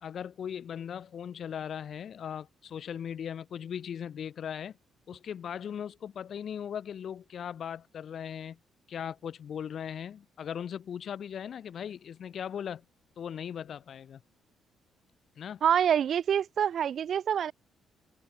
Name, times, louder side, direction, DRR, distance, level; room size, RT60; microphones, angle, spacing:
voice 1, 0.0-4.8 5.1-8.6 8.9-12.8 13.2-14.2 15.4-15.6, left 8 dB, 60° left, 2.2 m, -38 dB
voice 2, 15.6-17.5, right 8 dB, 60° right, 1.9 m, -26 dB
cardioid pair, 90°, 0 cm